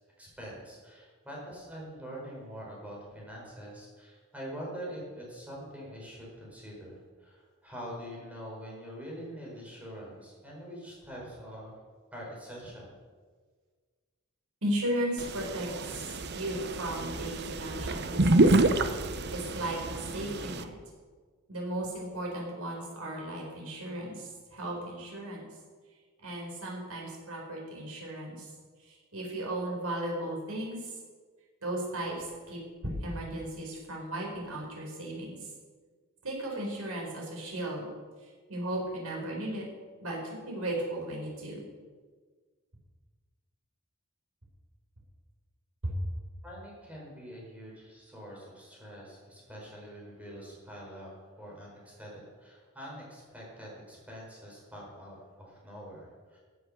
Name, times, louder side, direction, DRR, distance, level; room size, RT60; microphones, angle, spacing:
voice 1, 0.2-11.8 12.1-12.9 46.4-51.1 51.4-56.4, equal, 5° right, -4 dB, 4.8 m, -44 dB
voice 2, 14.6-18.6 19.3-20.7 21.5-25.5 26.2-28.5 28.8-30.9 31.6-35.4 36.2-37.9 38.5-39.6 40.0-41.6 45.8-46.0, right 1 dB, 85° right, -1 dB, 4.5 m, -35 dB
sound 1, 15.2-20.6, right 2 dB, 50° right, 0.8 m, -28 dB
15.5 x 7.9 x 6.6 m, 1.5 s
head